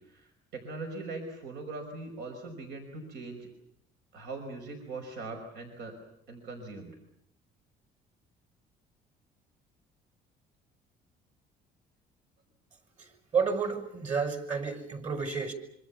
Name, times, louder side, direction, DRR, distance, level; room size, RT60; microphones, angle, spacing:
voice 1, 0.0-3.5 4.1-5.9 6.3-7.0, right 3 dB, 80° right, 5.5 m, -41 dB
voice 2, 13.0-15.5, right 5 dB, 45° right, 6.3 m, -31 dB
26.5 x 25.5 x 7.3 m
cardioid pair, 110°, 17 cm